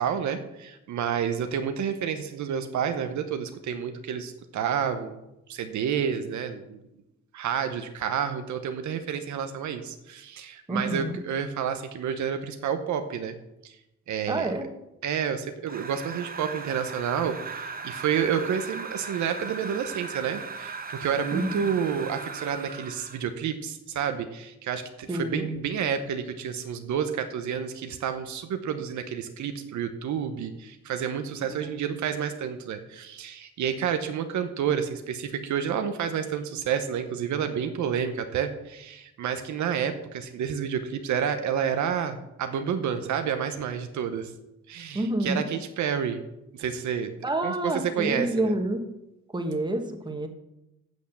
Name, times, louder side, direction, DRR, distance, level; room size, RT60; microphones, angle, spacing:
voice 1, 0.0-5.2 5.5-6.8 7.3-13.3 13.6-13.8 14.1-14.5 15.0-44.3 44.7-46.2 46.5-47.1 47.4-48.5, right 8 dB, 70° right, 7 dB, 1.0 m, -29 dB
voice 2, 10.7-11.2 14.3-14.7 21.3-21.7 25.1-25.6 31.5-31.7 44.9-45.4 47.2-48.8 49.3-50.3, right 1 dB, 15° right, 5 dB, 1.5 m, -28 dB
sound 1, 15.7-23.3, right 4 dB, 30° right, 1.0 m, -38 dB
8.2 x 6.4 x 7.1 m, 0.91 s
cardioid pair, 90°, 30 cm